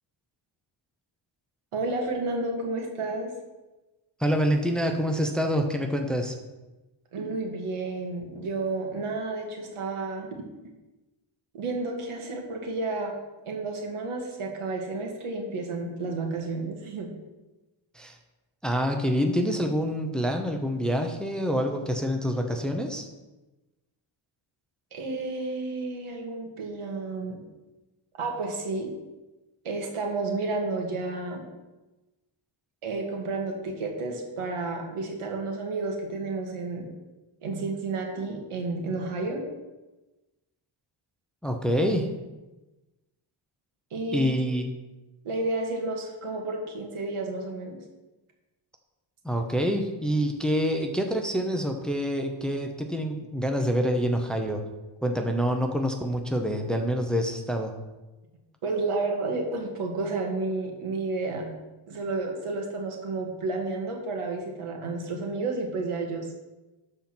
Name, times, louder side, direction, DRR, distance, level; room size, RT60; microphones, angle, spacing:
voice 1, 1.7-3.3 7.1-10.4 11.5-13.1 13.5-17.1 24.9-27.4 28.2-28.9 29.6-31.5 32.8-36.9 37.4-39.4 43.9-44.3 45.2-47.8 58.6-61.5 61.9-66.3, right 3 dB, 80° right, 1 dB, 2.1 m, -31 dB
voice 2, 4.2-6.4 17.9-18.2 18.6-23.1 41.4-42.1 44.1-44.7 49.2-54.6 55.0-57.8, equal, ahead, 3 dB, 0.8 m, -26 dB
13.0 x 4.5 x 6.1 m, 1.1 s
wide cardioid pair, 140°, 50 cm